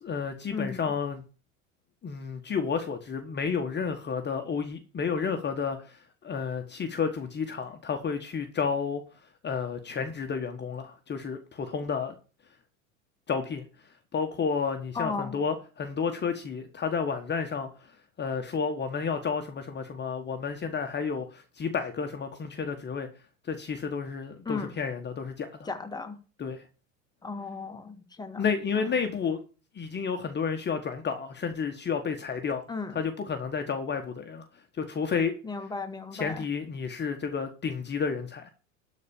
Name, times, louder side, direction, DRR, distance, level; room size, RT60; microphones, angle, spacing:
voice 1, 0.0-1.2 2.0-9.0 9.4-12.1 13.3-13.6 14.1-23.1 23.4-25.7 26.4-26.6 28.4-29.4 29.7-32.6 32.9-34.4 34.8-35.4 36.1-38.5, left 5 dB, 25° left, 1.5 m, -31 dB
voice 2, 0.5-0.8 14.9-15.4 24.4-24.7 25.6-26.2 27.2-28.5 28.7-28.9 32.7-32.9 35.4-36.4, left 4 dB, 10° left, 1.7 m, -35 dB
12.5 x 4.3 x 7.1 m
hypercardioid pair, 85°, 40 cm